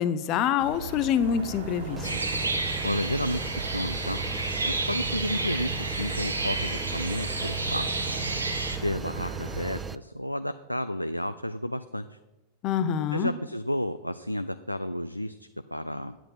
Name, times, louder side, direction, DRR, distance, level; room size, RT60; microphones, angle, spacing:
voice 1, 0.0-2.1 12.6-13.3, left 8 dB, 40° left, 13 dB, 0.7 m, -26 dB
sound 1, 0.6-9.8, right 2 dB, 60° right, 2.5 m, -38 dB
sound 2, 2.0-10.0, right 5 dB, 15° right, 0.3 m, -37 dB
sound 3, 2.0-8.8, right 2 dB, 80° right, 1.1 m, -31 dB
voice 2, 2.8-4.2 4.7-8.0 8.8-12.2 13.1-16.2, left 1 dB, 90° left, 11 dB, 0.3 m, -32 dB
10.0 x 8.1 x 6.1 m, 1.0 s
figure-of-eight pair, 90°, 0 cm